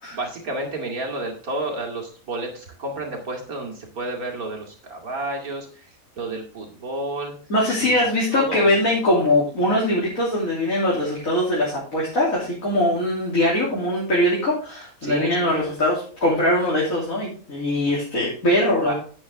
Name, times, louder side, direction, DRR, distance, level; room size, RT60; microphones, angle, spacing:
voice 1, 0.1-5.9 6.2-7.3 7.8-8.7 15.0-15.7 18.8-18.9, right 2 dB, 85° right, 1 dB, 2.8 m, -31 dB
voice 2, 7.5-18.9, left 1 dB, 70° left, -6 dB, 3.4 m, -21 dB
9.8 x 8.3 x 3.5 m, 0.42 s
omnidirectional pair, 1.5 m